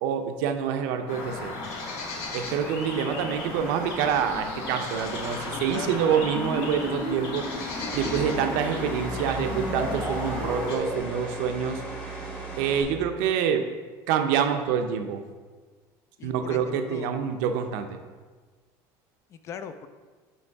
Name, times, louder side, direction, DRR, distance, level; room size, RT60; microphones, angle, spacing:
voice 1, 0.0-1.5 2.3-11.8 12.2-12.3 12.6-13.7 14.1-15.2 16.2-18.0, right 8 dB, 80° right, 6 dB, 0.6 m, -27 dB
sound 1, 1.1-10.8, left 3 dB, 85° left, 1.2 m, -36 dB
sound 2, 2.8-11.0, right 1 dB, 10° right, 0.7 m, -36 dB
sound 3, 3.3-12.8, right 2 dB, 15° left, 1.1 m, -38 dB
voice 2, 5.5-6.0 16.2-17.1 19.3-19.9, left 7 dB, 35° left, 10 dB, 0.4 m, -39 dB
7.8 x 3.1 x 4.6 m, 1.4 s
cardioid pair, 160°, 8 cm